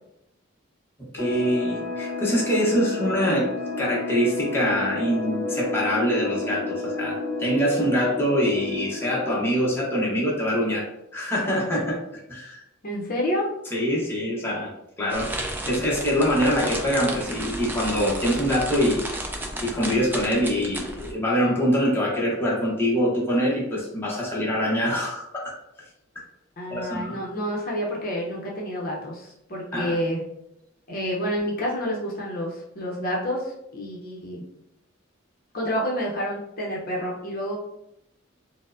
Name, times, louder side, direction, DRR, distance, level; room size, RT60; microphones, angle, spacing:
voice 1, 1.1-10.9 11.1-12.0 12.3-12.6 13.7-14.7 15.0-15.3 15.7-19.0 19.6-25.5 26.7-27.2 29.7-30.0, equal, 10° left, -5 dB, 0.8 m, -24 dB
sound 1, 1.2-10.5, left 2 dB, 90° left, 0.7 m, -31 dB
voice 2, 12.8-13.4 26.6-30.2 30.9-34.4 35.5-37.6, equal, 50° left, -3 dB, 0.7 m, -29 dB
sound 2, 15.1-21.1, right 1 dB, 10° right, 0.4 m, -33 dB
4.3 x 2.1 x 2.5 m, 0.82 s
head